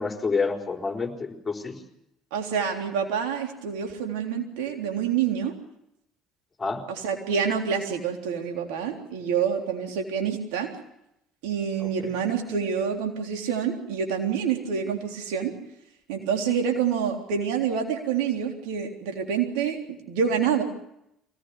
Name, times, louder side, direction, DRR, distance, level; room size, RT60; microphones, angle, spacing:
voice 1, 0.0-1.7 6.6-6.9 11.8-11.9, left 4 dB, 25° left, 2 dB, 4.3 m, -28 dB
voice 2, 2.3-5.5 6.9-10.7 11.4-15.5 16.1-20.6, right 7 dB, 75° right, 3 dB, 3.6 m, -27 dB
24.0 x 18.0 x 8.3 m, 0.82 s
hypercardioid pair, 60°, 0 cm